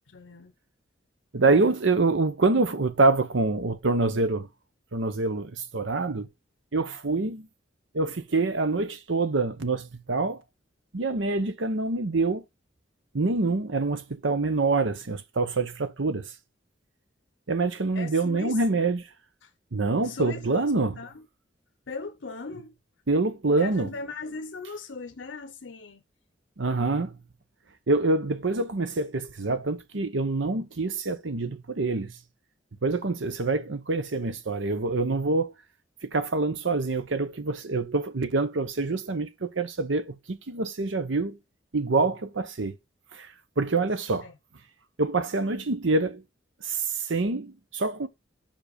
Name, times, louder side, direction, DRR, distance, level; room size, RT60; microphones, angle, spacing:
voice 1, 0.1-0.5 17.9-18.6 19.4-19.5 20.0-21.3 21.9-22.7 23.5-26.0 44.2-44.3, left 4 dB, 75° left, 0.7 m, -39 dB
voice 2, 1.3-4.5 4.9-6.3 6.7-7.5 7.9-10.4 10.9-12.4 13.1-16.3 17.5-19.0 19.7-20.9 23.1-23.9 26.6-27.2 27.9-32.1 32.8-35.5 36.0-41.4 41.7-42.8 43.1-43.3 43.6-44.3 45.0-46.2 46.6-48.1, right 3 dB, 80° right, 0.9 m, -26 dB
5.3 x 5.1 x 5.0 m
head